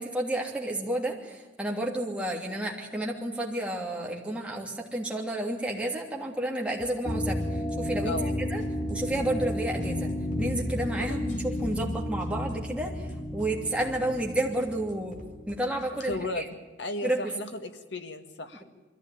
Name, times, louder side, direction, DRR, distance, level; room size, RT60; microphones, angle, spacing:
voice 1, 0.0-7.4 7.8-8.6 8.9-10.1 10.4-13.1 13.3-15.2 15.5-16.4 17.0-17.2, right 1 dB, 5° right, -1 dB, 2.9 m, -31 dB
sound 1, 6.8-7.1 7.4-7.7 8.0-8.3 8.6-8.9 9.2-9.5 9.8-11.9 12.2-12.5 12.8-13.1 13.4-13.7 14.0-14.3 14.6-16.3, left 1 dB, 45° left, 2.6 m, -51 dB
sound 2, 7.1-15.7, left 1 dB, 25° left, 2.4 m, -32 dB
voice 2, 16.0-16.5 16.8-18.6, left 2 dB, 75° left, 7 dB, 1.7 m, -35 dB
22.5 x 15.0 x 9.5 m, 1.2 s
head